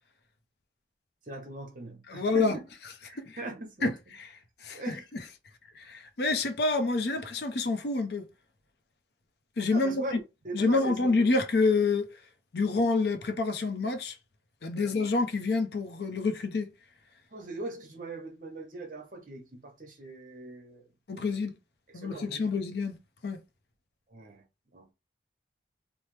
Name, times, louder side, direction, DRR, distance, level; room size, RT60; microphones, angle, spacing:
voice 1, 1.3-2.6 3.1-3.9 4.7-5.1 9.7-10.2 10.4-11.1 14.7-14.9 17.3-20.8 21.1-21.3 21.9-22.5 24.1-24.4 24.7-24.9, right 2 dB, 45° right, 0.8 m, -41 dB
voice 2, 2.1-2.6 3.2-3.4 3.8-4.3 4.6-5.0 5.8-8.3 9.6-10.0 10.5-12.1 12.5-14.1 14.6-16.7 21.1-21.6 21.9-23.0 23.2-23.4, left 3 dB, 60° left, 0.5 m, -27 dB
3.1 x 2.0 x 3.1 m
head